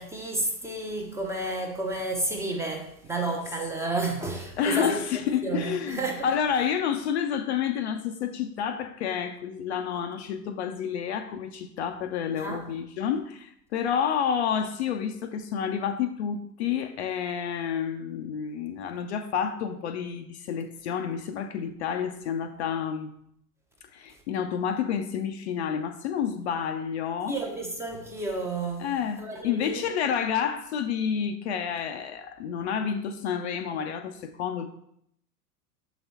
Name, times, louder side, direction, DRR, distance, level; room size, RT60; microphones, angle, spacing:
voice 1, 0.0-5.0 5.4-6.3 12.4-12.6 27.3-29.8, right 2 dB, 5° right, 0.7 m, -31 dB
voice 2, 4.6-23.1 23.9-27.4 28.8-34.7, left 8 dB, 45° left, 0.6 m, -29 dB
6.9 x 4.0 x 4.2 m
figure-of-eight pair, 90°, 47 cm